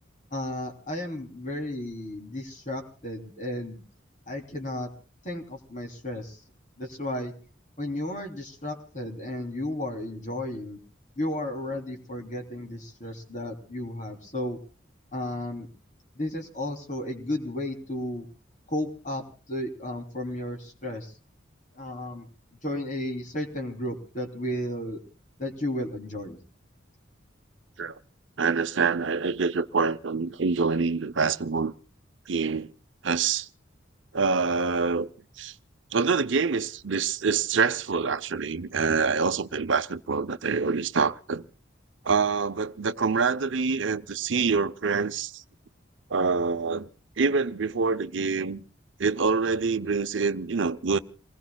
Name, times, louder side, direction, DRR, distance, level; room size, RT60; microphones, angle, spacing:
voice 1, 0.3-3.8 4.3-4.9 5.2-6.4 6.8-7.3 7.8-10.8 11.2-14.6 15.1-15.7 16.2-18.2 18.7-19.2 19.5-21.1 21.8-22.3 22.6-25.0 25.4-26.4, left 1 dB, 40° left, 3.3 m, -33 dB
voice 2, 28.4-31.7 32.3-32.7 33.0-33.5 34.1-35.1 35.4-35.5 35.9-41.4 42.0-45.4 46.1-46.9 47.2-48.6 49.0-51.0, right 5 dB, 75° right, 0.7 m, -26 dB
28.0 x 20.0 x 2.3 m
head